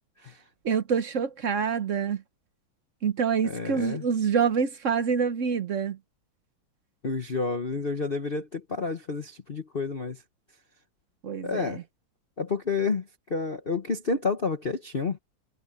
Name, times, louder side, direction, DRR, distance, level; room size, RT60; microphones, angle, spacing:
voice 1, 0.6-2.2 3.0-6.0 11.2-11.8, right 6 dB, 55° right, 0.9 m, -26 dB
voice 2, 3.4-4.1 7.0-10.2 11.4-11.8 12.4-15.2, left 4 dB, 35° left, 0.9 m, -30 dB
omnidirectional pair, 2.3 m